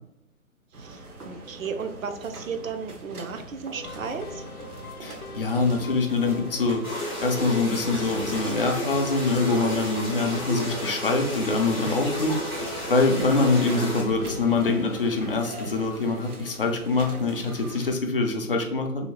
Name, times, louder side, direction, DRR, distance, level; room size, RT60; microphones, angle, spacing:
voice 1, 0.7-4.5, right 5 dB, 65° right, 8 dB, 0.5 m, -35 dB
sound 1, 0.7-18.0, right 2 dB, 85° right, 0.9 m, -42 dB
sound 2, 3.7-15.4, left 3 dB, 85° left, 0.7 m, -42 dB
voice 2, 5.0-6.9 7.2-19.1, left 3 dB, 40° left, 4 dB, 0.4 m, -24 dB
sound 3, 6.8-14.0, equal, 20° right, 0.4 m, -32 dB
2.9 x 2.7 x 2.9 m, 0.79 s
figure-of-eight pair, 140°, 43 cm